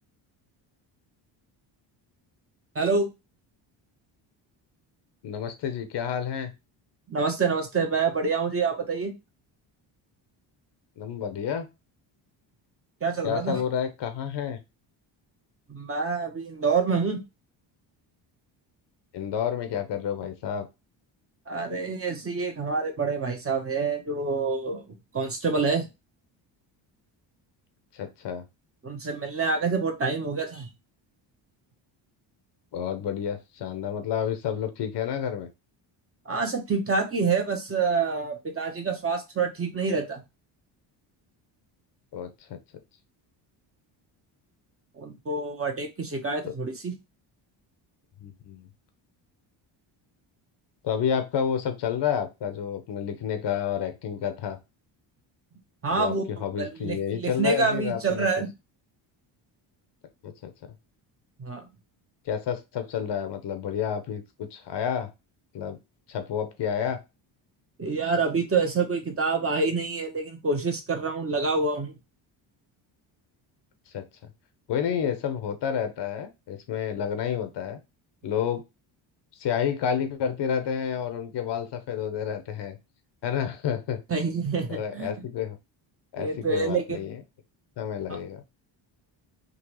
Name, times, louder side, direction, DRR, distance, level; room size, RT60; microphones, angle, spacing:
voice 1, 2.7-3.1 7.1-9.1 13.0-13.6 15.7-17.2 21.5-24.8 25.1-25.9 28.8-30.7 36.2-40.2 45.0-46.9 55.8-56.2 56.6-58.5 61.4-61.7 67.8-72.0 84.1-85.1 86.2-87.0 88.1-88.2, right 4 dB, 30° right, 3 dB, 1.0 m, -27 dB
voice 2, 5.2-6.5 11.0-11.7 13.2-14.6 19.1-20.7 27.9-28.4 32.7-35.5 42.1-42.6 46.4-46.5 48.2-48.7 50.8-54.6 55.9-58.3 60.2-60.5 62.2-65.1 65.5-65.8 66.1-67.0 73.9-74.3 74.7-77.8 78.2-78.6 79.4-82.8 83.2-84.0 84.7-85.6 86.1-87.2 87.8-88.4, left 8 dB, 60° left, 8 dB, 0.8 m, -30 dB
3.8 x 2.4 x 3.0 m, 0.24 s
cardioid pair, 90°, 47 cm